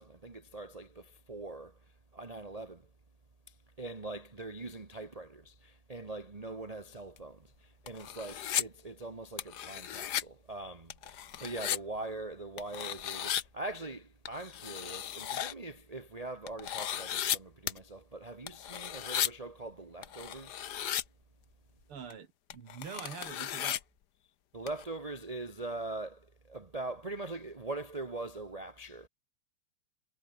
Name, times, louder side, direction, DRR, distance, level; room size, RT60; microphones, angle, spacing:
voice 1, 0.0-1.7 2.1-2.8 3.8-20.7 24.5-29.1, right 2 dB, 20° right, 1.1 m, -42 dB
sound 1, 7.2-7.3 7.9-8.6 9.4-10.2 10.9-11.8 12.6-13.4 14.3-15.5 16.5-17.4 17.7-17.8 18.5-19.3 20.0-21.0 22.1-22.2 22.5-23.8 24.7-24.9, left 10 dB, 55° left, 1.4 m, -35 dB
voice 2, 21.9-23.8, right 7 dB, 75° right, 3.1 m, -45 dB
omnidirectional pair, 2.4 m